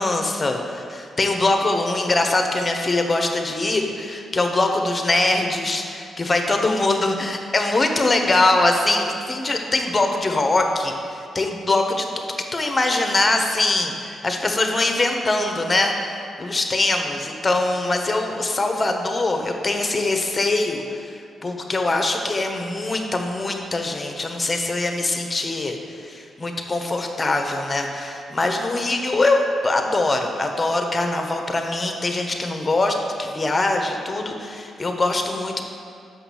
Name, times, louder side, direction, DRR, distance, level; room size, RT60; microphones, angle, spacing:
voice 1, 0.0-12.2 12.5-35.6, left 2 dB, 30° left, 3 dB, 1.2 m, -22 dB
6.1 x 5.8 x 7.2 m, 2.4 s
hypercardioid pair, 45°, 0 cm